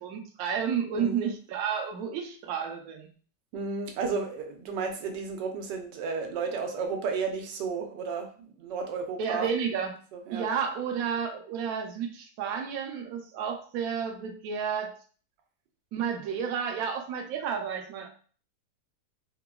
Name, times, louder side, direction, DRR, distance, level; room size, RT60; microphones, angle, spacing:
voice 1, 0.0-3.1 9.2-9.9 10.3-14.9 15.9-18.1, right 7 dB, 70° right, 3 dB, 0.9 m, -31 dB
voice 2, 0.9-1.3 3.5-9.5 10.1-10.5, right 5 dB, 90° right, 4 dB, 1.2 m, -33 dB
3.6 x 2.1 x 2.2 m, 0.41 s
omnidirectional pair, 1.8 m